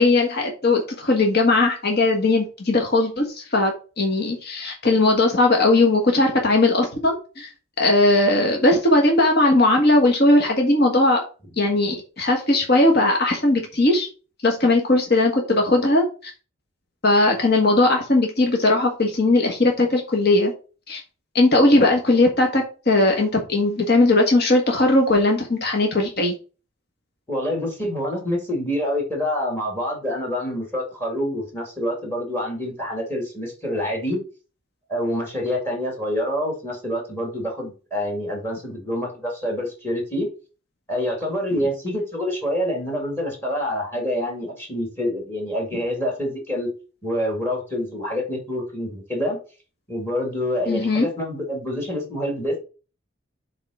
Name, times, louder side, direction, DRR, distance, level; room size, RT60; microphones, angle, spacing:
voice 1, 0.0-7.5 7.8-11.2 11.6-14.1 14.4-16.3 17.0-20.5 20.9-21.0 21.3-26.3 50.7-51.1, left 2 dB, 55° left, 2 dB, 1.6 m, -18 dB
voice 2, 27.3-34.2 34.9-40.3 40.9-46.7 47.0-49.4 49.9-52.6, left 1 dB, 10° left, 2 dB, 2.2 m, -26 dB
7.4 x 3.9 x 4.9 m, 0.35 s
head